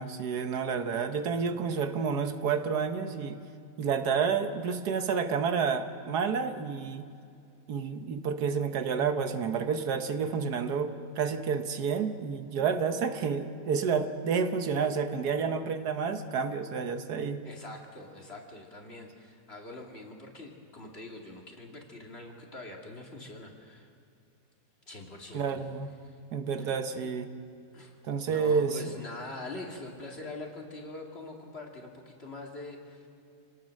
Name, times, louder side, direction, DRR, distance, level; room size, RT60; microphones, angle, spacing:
voice 1, 0.0-3.4 3.8-7.1 7.7-17.4 25.3-25.9 26.3-27.3 28.0-28.9, right 6 dB, 80° right, 8 dB, 1.6 m, -30 dB
voice 2, 17.4-23.9 24.9-25.6 26.0-26.2 26.6-26.8 27.7-28.0 28.2-33.1, left 2 dB, 40° left, 0 dB, 2.6 m, -44 dB
27.5 x 18.5 x 6.5 m, 2.5 s
omnidirectional pair, 1.7 m